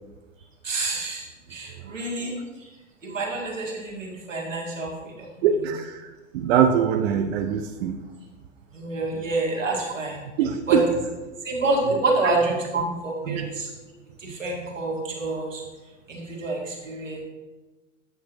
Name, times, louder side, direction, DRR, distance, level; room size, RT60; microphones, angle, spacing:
voice 1, 0.6-2.7 3.0-5.4 8.7-10.2 10.7-10.8 11.4-13.7 14.2-15.6 16.1-17.2, right 2 dB, 90° right, -2 dB, 1.8 m, -28 dB
voice 2, 5.4-8.0 10.4-10.8 13.2-13.5 14.3-14.4, right 8 dB, 55° right, 5 dB, 0.6 m, -23 dB
8.7 x 6.3 x 3.0 m, 1.2 s
hypercardioid pair, 95°, 37 cm